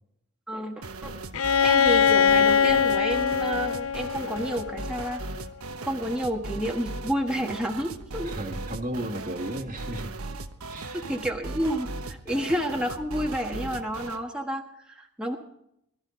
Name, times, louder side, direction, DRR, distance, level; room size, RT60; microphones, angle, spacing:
voice 1, 0.5-1.1 1.6-5.2 5.8-8.3 10.9-15.4, equal, 5° right, 0 dB, 1.4 m, -30 dB
sound 1, 0.8-14.2, right 2 dB, 75° right, 1.1 m, -38 dB
Bowed string instrument, 1.3-5.1, left 7 dB, 65° left, 0.6 m, -22 dB
voice 2, 8.2-10.1 10.7-11.1, right 1 dB, 35° right, 5 dB, 1.7 m, -34 dB
20.5 x 13.5 x 3.8 m, 0.77 s
head